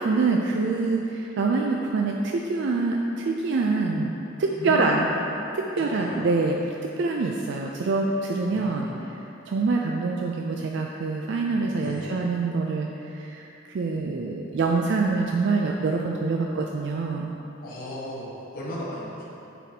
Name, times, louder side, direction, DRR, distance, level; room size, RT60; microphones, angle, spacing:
voice 1, 0.0-4.1 4.4-5.1 5.5-6.6 7.0-8.9 9.5-17.3, right 3 dB, 60° right, 0 dB, 0.4 m, -25 dB
voice 2, 4.6-5.0 5.8-6.2 8.4-9.1 11.7-12.2 17.6-19.4, left 1 dB, 45° left, -8 dB, 1.2 m, -36 dB
9.1 x 4.1 x 2.8 m, 2.9 s
head